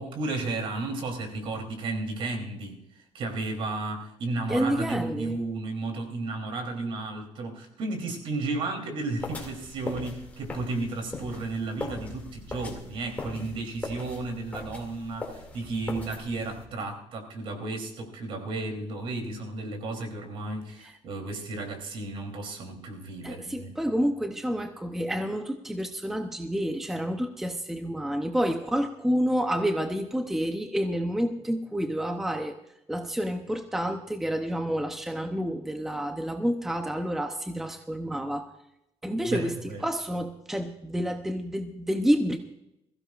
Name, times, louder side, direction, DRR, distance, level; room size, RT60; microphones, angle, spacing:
voice 1, 0.0-23.7 39.2-39.9, right 2 dB, 55° right, 4 dB, 3.2 m, -33 dB
voice 2, 4.5-5.4 23.2-32.6 32.9-38.5 39.0-39.6 39.8-42.4, equal, 5° right, 5 dB, 0.7 m, -29 dB
sound 1, 9.2-16.6, left 2 dB, 15° left, 2.4 m, -40 dB
21.5 x 15.5 x 2.5 m, 0.84 s
cardioid pair, 170°, 11 cm